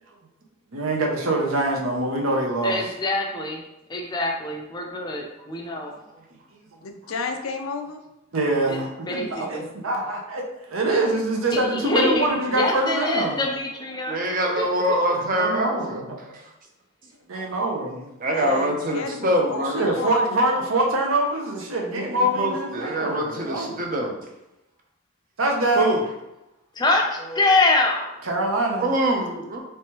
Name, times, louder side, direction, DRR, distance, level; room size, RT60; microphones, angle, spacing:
voice 1, 0.7-2.9 8.3-13.4 14.1-14.4 15.3-16.4 17.3-18.1 19.7-23.9 25.4-26.0 27.2-27.5 28.3-28.9, right 1 dB, 75° right, 0 dB, 0.7 m, -24 dB
voice 2, 2.6-3.6 3.9-5.9 8.7-8.8 9.0-9.7 11.5-14.2 14.6-15.0 26.8-28.1, left 2 dB, 20° left, 1 dB, 0.5 m, -24 dB
voice 3, 6.8-8.0 18.3-20.4, left 4 dB, 90° left, 5 dB, 0.5 m, -32 dB
voice 4, 14.1-16.0 16.3-16.4 18.2-19.8 21.9-24.2 25.8-26.0 28.7-29.6, right 1 dB, 40° right, 2 dB, 0.6 m, -24 dB
3.3 x 3.3 x 2.9 m, 0.93 s
head